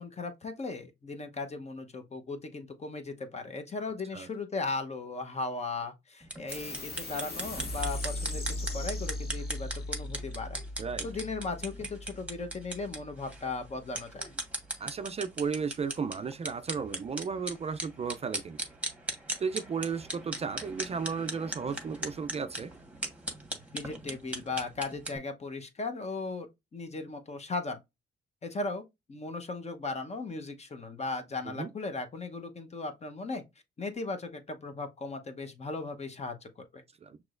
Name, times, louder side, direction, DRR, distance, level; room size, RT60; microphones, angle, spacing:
voice 1, 0.0-10.6 11.0-14.3 23.7-27.8 28.4-33.4 33.8-36.8, left 3 dB, 35° left, 0.9 m, -37 dB
sound 1, 6.2-25.2, right 2 dB, 5° right, 1.4 m, -39 dB
sound 2, 6.5-13.4, left 2 dB, 55° left, 1.8 m, -38 dB
voice 2, 14.8-18.6 19.4-22.7 31.5-31.7 37.0-37.3, right 5 dB, 30° right, 0.4 m, -34 dB
6.0 x 3.0 x 2.5 m
cardioid pair, 90°, 20 cm